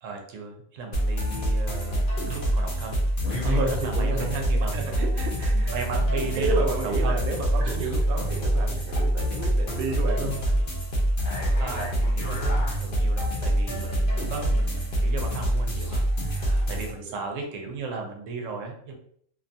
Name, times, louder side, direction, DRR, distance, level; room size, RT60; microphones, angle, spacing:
voice 1, 0.0-3.0 3.3-4.8 5.7-7.2 7.6-8.0 11.6-18.9, right 4 dB, 80° right, 2 dB, 1.0 m, -36 dB
sound 1, 0.9-16.9, right 1 dB, 50° left, 0.7 m, -25 dB
voice 2, 3.4-5.7 6.3-10.6 13.7-13.9 16.3-17.2, right 2 dB, 60° right, 1 dB, 0.6 m, -32 dB
2.6 x 2.3 x 2.6 m, 0.64 s
omnidirectional pair, 1.3 m